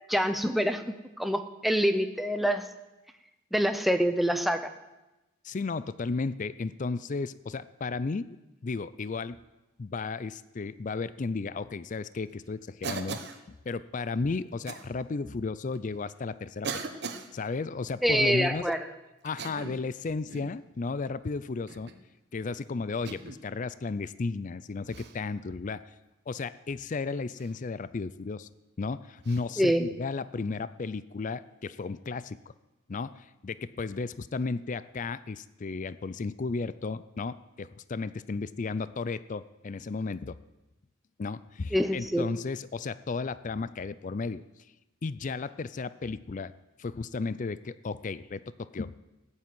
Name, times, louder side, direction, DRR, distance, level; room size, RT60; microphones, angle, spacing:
voice 1, 0.1-2.6 3.5-4.7 18.0-18.8 29.6-29.9 41.7-42.3, equal, ahead, 8 dB, 0.8 m, -26 dB
voice 2, 5.4-8.4 8.6-9.4 9.8-13.2 13.5-16.9 17.3-18.7 19.2-21.9 22.3-25.8 26.3-28.5 28.8-32.4 32.9-40.4 41.2-44.4 45.0-46.5 46.8-48.9, left 4 dB, 40° left, 16 dB, 0.4 m, -34 dB
Cough, 12.8-13.4 14.7-14.9 15.8-15.9 16.6-17.3 19.3-19.9 20.3-20.6 21.7-22.0 23.1-23.4 24.9-25.2 27.4-27.5 29.2-29.4, right 4 dB, 55° right, 1.1 m, -38 dB
14.5 x 8.5 x 9.3 m, 1.0 s
head